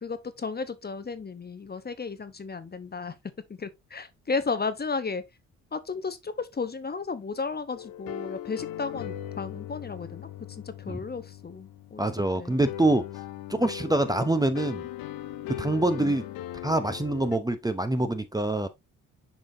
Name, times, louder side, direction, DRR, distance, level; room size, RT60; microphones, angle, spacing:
voice 1, 0.0-3.2 3.5-5.2 5.7-12.1 12.4-12.5 16.0-16.2, left 4 dB, 25° left, 0.9 m, -34 dB
sound 1, 7.7-17.4, left 13 dB, 70° left, 0.7 m, -39 dB
voice 2, 12.0-13.1 13.5-14.9 15.5-16.3 16.6-18.7, right 2 dB, 10° right, 0.7 m, -25 dB
7.3 x 5.1 x 2.7 m
hypercardioid pair, 50°, 36 cm